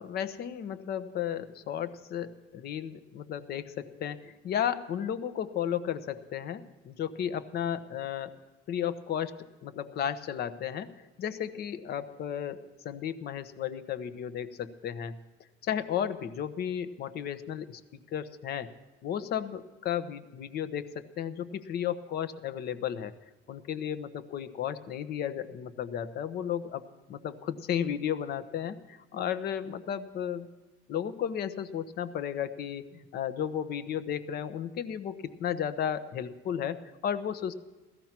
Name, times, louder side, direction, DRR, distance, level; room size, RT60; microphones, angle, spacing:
voice 1, 0.0-8.4 8.7-15.2 15.6-17.8 18.1-18.7 19.0-23.1 23.5-30.5 30.9-37.5, left 9 dB, 55° left, 12 dB, 1.1 m, -34 dB
17.0 x 14.0 x 6.0 m, 1.2 s
cardioid pair, 165°, 19 cm